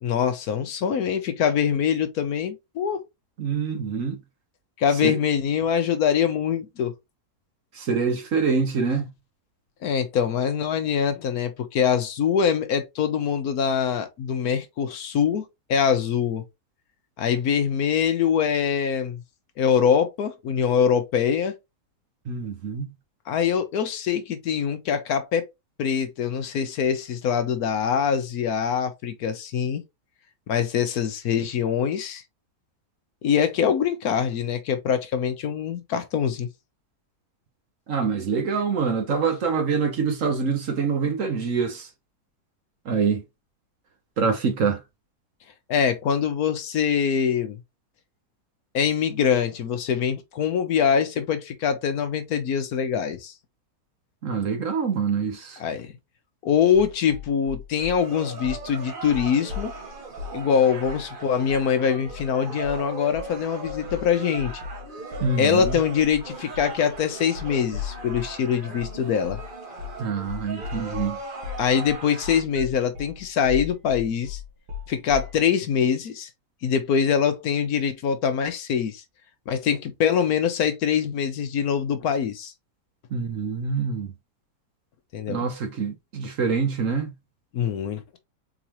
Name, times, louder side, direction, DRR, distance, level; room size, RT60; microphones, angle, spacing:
voice 1, 0.0-3.0 4.8-6.9 9.8-16.4 17.2-19.2 19.6-21.5 23.3-25.4 25.8-29.8 30.5-32.2 33.2-36.5 45.7-47.6 48.7-53.3 55.6-55.9 56.4-59.7 60.3-64.5 65.4-69.4 71.6-74.4 74.9-76.3 76.6-79.0 79.5-82.5 85.1-85.4 87.5-88.2, left 7 dB, 70° left, 1.2 m, -24 dB
voice 2, 3.4-4.2 5.0-5.2 7.7-9.0 22.3-22.9 37.9-41.9 42.9-43.2 44.2-44.8 54.2-55.6 65.2-65.8 70.0-71.2 83.1-84.1 85.3-87.1, right 5 dB, 55° right, 1.2 m, -25 dB
sound 1, 56.7-58.0 58.4-58.7 59.0-60.4 60.8-61.1 61.5-61.7 62.1-62.3 62.6-62.9 63.1-68.4 68.8-69.0 69.2-69.5 69.8-70.0 70.3-75.4, left 7 dB, 75° right, 1.9 m, -37 dB
sound 2, 57.9-72.4, right 4 dB, 35° right, 1.1 m, -39 dB
4.1 x 3.7 x 2.9 m
omnidirectional pair, 1.8 m